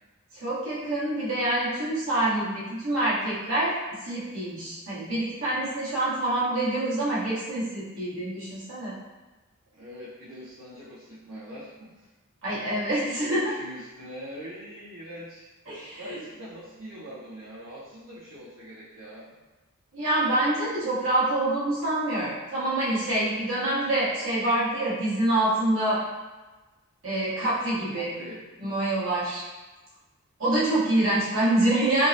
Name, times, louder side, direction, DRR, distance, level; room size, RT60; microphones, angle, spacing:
voice 1, 0.3-3.7 4.0-8.9 12.4-13.5 15.7-16.2 19.9-26.0 27.0-28.1 28.6-29.4 30.4-32.1, right 1 dB, 65° right, -9 dB, 1.1 m, -26 dB
voice 2, 9.7-12.1 13.0-19.4 27.9-28.4, equal, 80° right, -11 dB, 0.7 m, -43 dB
3.5 x 2.0 x 2.7 m, 1.2 s
head